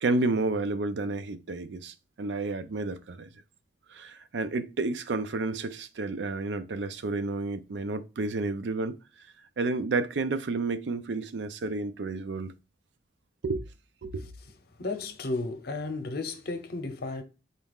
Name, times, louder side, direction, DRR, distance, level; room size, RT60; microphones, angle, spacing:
voice 1, 0.0-3.3 3.9-9.0 9.6-12.5 13.4-13.6 14.0-14.3, right 3 dB, 70° right, 0.5 m, -31 dB
voice 2, 14.8-17.2, left 3 dB, 60° left, 0.7 m, -33 dB
4.1 x 2.4 x 3.4 m
head